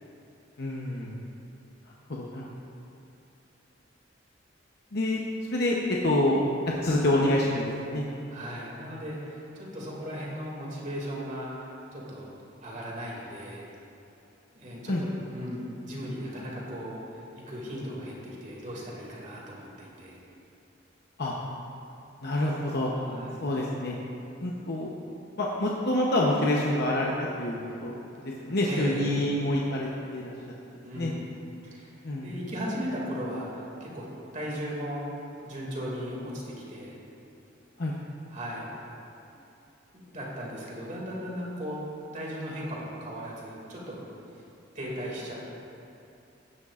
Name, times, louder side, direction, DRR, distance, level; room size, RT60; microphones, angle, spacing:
voice 1, 0.6-1.2 2.1-2.5 4.9-5.2 5.5-8.0 14.9-15.0 21.2-21.3 22.2-22.9 23.4-23.9 24.4-25.1 25.4-30.3 30.9-31.1 32.0-32.3 37.8-37.9, left 1 dB, 55° left, -3 dB, 0.9 m, -27 dB
voice 2, 8.3-12.3 12.6-13.7 14.5-20.2 23.0-23.4 28.6-29.2 30.8-31.2 31.6-32.0 32.2-34.1 34.3-35.0 35.4-37.0 38.3-38.7 39.9-41.8 42.1-44.0 44.7-45.4, equal, 40° right, -4 dB, 2.3 m, -37 dB
15.5 x 11.0 x 2.5 m, 2.7 s
head